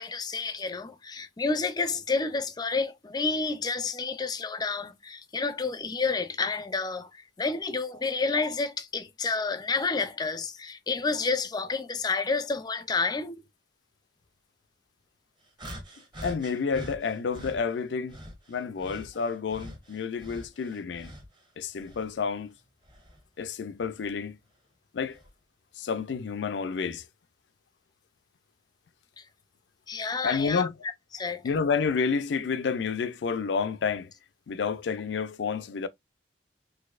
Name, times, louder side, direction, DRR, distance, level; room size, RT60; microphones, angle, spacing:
voice 1, 0.0-13.4 29.2-29.3 29.9-30.7 31.1-31.4, left 4 dB, 25° left, 0.4 m, -30 dB
sound 1, 15.6-17.6 18.1-21.4 21.8-23.2 24.0-24.2 25.1-25.3, equal, 25° right, 1.0 m, -44 dB
voice 2, 16.2-18.2 18.5-21.1 21.6-22.5 23.4-24.4 24.9-25.2 25.8-27.0 30.2-30.7 31.4-34.1 34.5-35.9, left 5 dB, 80° left, 0.4 m, -29 dB
4.1 x 2.6 x 2.4 m
head